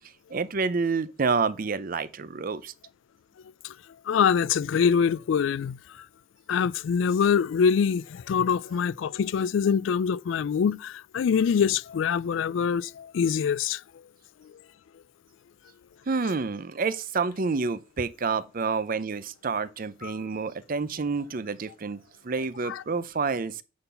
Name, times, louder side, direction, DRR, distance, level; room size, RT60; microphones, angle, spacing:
voice 1, 0.3-2.7 16.1-23.6, right 4 dB, 45° right, 0.5 m, -28 dB
voice 2, 4.1-5.8 6.5-13.8 20.0-20.1 22.6-22.8, left 7 dB, 75° left, 0.3 m, -24 dB
9.6 x 4.0 x 5.6 m
head